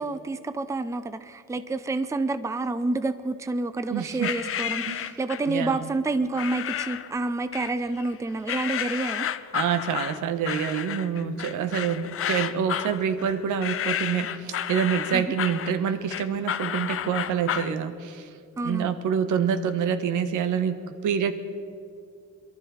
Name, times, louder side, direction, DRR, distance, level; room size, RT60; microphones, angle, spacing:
voice 1, 0.0-9.3 15.1-15.3 18.6-19.0, right 2 dB, 10° right, 11 dB, 0.6 m, -29 dB
voice 2, 3.9-4.3 4.9-5.1 5.5-5.9 9.5-18.2 18.6-21.3, right 7 dB, 80° right, 10 dB, 1.1 m, -27 dB
sound 1, 4.2-5.5 6.3-7.1 7.5-8.1 8.5-17.8, left 9 dB, 45° left, 0.6 m, -31 dB
22.0 x 12.5 x 4.3 m, 2.3 s
cardioid pair, 90°, 30 cm